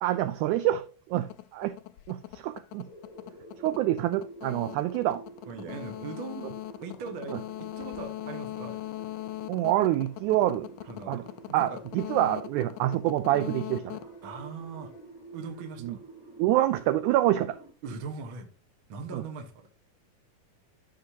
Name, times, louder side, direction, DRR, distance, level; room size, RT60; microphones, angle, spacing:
voice 1, 0.0-0.8 1.1-1.2 1.6-1.8 2.1-2.9 3.6-5.2 7.3-7.4 9.5-10.7 11.1-11.2 11.5-14.0 15.8-16.0 16.4-17.6 19.1-19.2, right 14 dB, 85° right, 1.7 m, -26 dB
sound 1, 1.2-15.0, left 16 dB, 80° left, 1.9 m, -41 dB
sound 2, 2.8-17.7, right 2 dB, 25° right, 0.5 m, -49 dB
voice 2, 5.5-6.5 6.8-8.8 10.8-11.8 14.2-14.9 15.3-16.0 17.8-18.5 18.9-19.7, right 4 dB, 55° right, 1.5 m, -40 dB
13.0 x 5.7 x 2.8 m
omnidirectional pair, 3.9 m